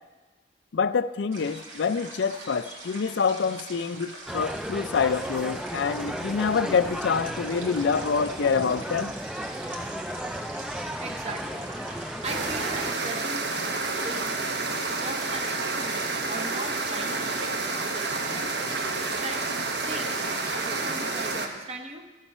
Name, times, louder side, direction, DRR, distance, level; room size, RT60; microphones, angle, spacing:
voice 1, 0.7-9.1, left 5 dB, 65° left, 14 dB, 0.4 m, -26 dB
sound 1, 1.3-20.8, right 2 dB, 75° right, 2.0 m, -43 dB
sound 2, 4.3-12.9, equal, 5° right, 0.3 m, -35 dB
voice 2, 11.0-11.7 12.2-13.5 14.0-14.4 14.8-17.5 17.8-19.5 19.7-20.2 20.5-22.1, right 2 dB, 35° right, 5 dB, 0.9 m, -39 dB
sound 3, 12.2-21.5, right 3 dB, 60° right, 1.1 m, -29 dB
13.5 x 7.3 x 5.5 m, 1.2 s
head